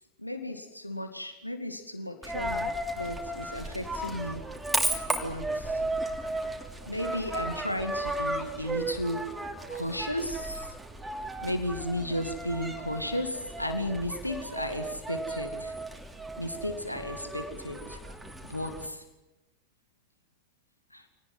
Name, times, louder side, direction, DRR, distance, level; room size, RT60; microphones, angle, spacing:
voice 1, 0.2-4.4 5.2-5.8 6.9-9.3 9.7-10.7 11.4-15.7 16.4-18.0 18.5-19.0 20.9-21.0, left 1 dB, 90° left, 6 dB, 2.3 m, -34 dB
Coin (dropping), 2.2-18.9, right 2 dB, 5° right, 3.0 m, -35 dB
27.5 x 19.0 x 9.4 m, 1.0 s
figure-of-eight pair, 90°, 0 cm